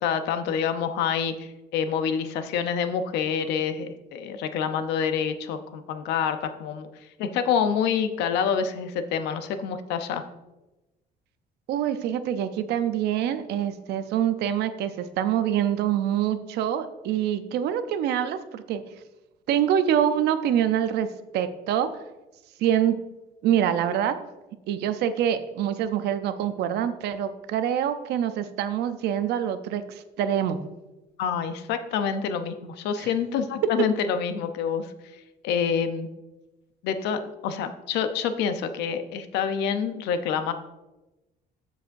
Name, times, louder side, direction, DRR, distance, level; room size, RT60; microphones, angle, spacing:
voice 1, 0.0-10.2 31.2-36.1 36.8-40.5, left 7 dB, 90° left, 9 dB, 0.7 m, -27 dB
voice 2, 11.7-18.8 19.5-21.1 21.3-21.9 22.6-23.0 23.4-24.1 24.7-30.6 33.0-33.1, right 10 dB, 80° right, 10 dB, 0.6 m, -25 dB
14.5 x 4.9 x 2.6 m, 1.0 s
cardioid pair, 110°, 17 cm